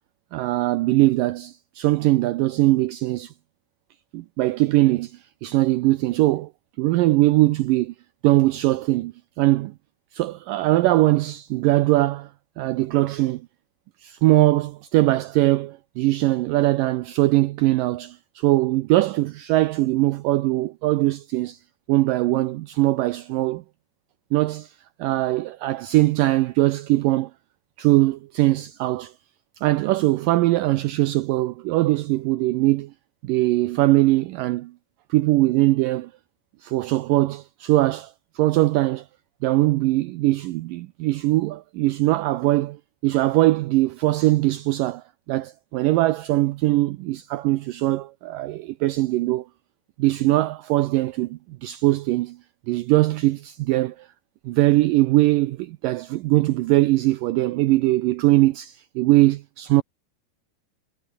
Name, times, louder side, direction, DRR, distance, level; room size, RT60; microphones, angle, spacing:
voice 1, 0.3-3.3 4.1-6.5 6.8-7.9 8.2-9.8 10.1-12.3 12.6-13.4 14.0-21.6 21.9-23.6 24.3-24.7 25.0-27.3 27.8-29.1 29.6-32.9 33.2-34.7 35.1-36.1 36.6-39.1 39.4-49.5 50.0-52.4 52.7-54.1 54.5-59.8, right 18 dB, 90° right, 1.9 m, -21 dB
omnidirectional pair, 4.7 m